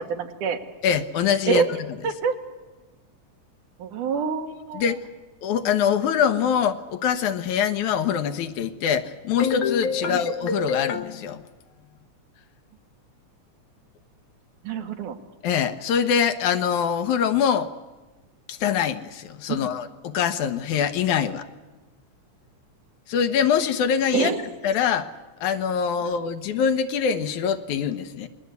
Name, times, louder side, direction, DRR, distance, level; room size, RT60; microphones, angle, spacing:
voice 1, 0.1-0.6 1.5-1.7 2.0-2.3 3.8-4.8 10.0-10.2 14.6-15.2 19.6-19.7 24.1-24.4, right 6 dB, 85° right, 5 dB, 3.2 m, -26 dB
voice 2, 0.8-1.6 4.7-5.0 5.4-11.5 15.4-17.7 18.5-21.5 23.1-24.3 24.6-25.1 25.4-28.3, left 7 dB, 75° left, 8 dB, 2.5 m, -23 dB
27.0 x 20.5 x 8.2 m, 1.2 s
omnidirectional pair, 3.5 m